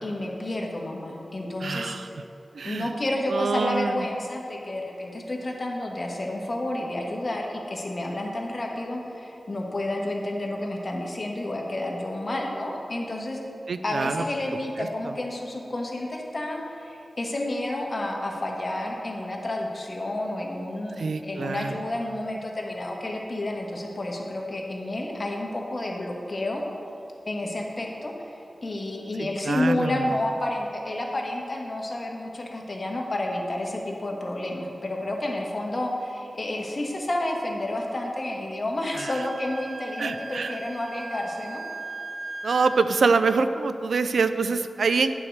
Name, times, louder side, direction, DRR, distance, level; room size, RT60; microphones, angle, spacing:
voice 1, 0.0-2.1 2.6-13.4 13.8-26.6 27.3-41.6, left 1 dB, 50° left, 0 dB, 1.3 m, -30 dB
voice 2, 1.6-2.1 2.5-2.9 3.3-4.0 13.7-14.2 14.8-14.9 21.0-21.8 29.2-29.9 38.9-39.1 40.0-40.6 42.4-45.1, right 4 dB, 90° right, 10 dB, 0.3 m, -25 dB
Wind instrument woodwind instrument, 38.9-42.9, right 3 dB, 50° right, 1.1 m, -38 dB
8.8 x 4.7 x 6.5 m, 2.7 s
wide cardioid pair, 60°, 0 cm